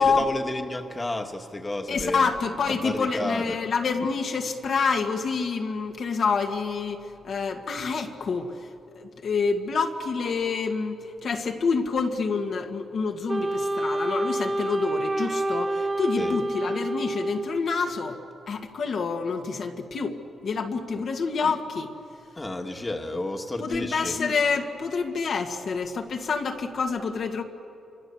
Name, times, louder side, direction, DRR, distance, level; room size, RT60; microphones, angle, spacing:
voice 1, 0.0-2.3 2.7-3.6 16.2-16.4 21.0-21.1 22.4-24.2, left 1 dB, 20° left, 4 dB, 1.9 m, -31 dB
voice 2, 1.9-18.2 18.5-21.9 23.6-27.4, left 5 dB, 65° left, 3 dB, 2.0 m, -27 dB
Wind instrument woodwind instrument, 13.3-17.9, right 1 dB, 20° right, 1.2 m, -28 dB
28.0 x 25.5 x 7.2 m, 2.7 s
cardioid pair, 90°, 0 cm